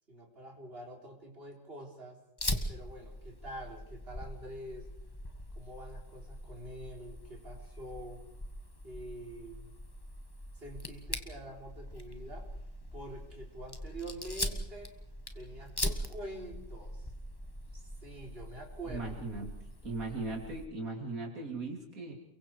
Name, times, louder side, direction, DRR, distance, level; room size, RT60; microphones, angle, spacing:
voice 1, 0.1-2.2 2.7-4.9 5.5-8.3 8.8-9.7 10.5-12.5 12.9-14.9 15.3-17.1 17.7-19.2, right 1 dB, 45° right, 1 dB, 4.3 m, -46 dB
Fire, 2.4-20.7, left 1 dB, 15° left, 1.6 m, -41 dB
voice 2, 18.9-19.5 19.8-22.1, right 3 dB, 80° right, 0 dB, 3.7 m, -38 dB
29.5 x 23.0 x 4.8 m, 0.78 s
omnidirectional pair, 1.5 m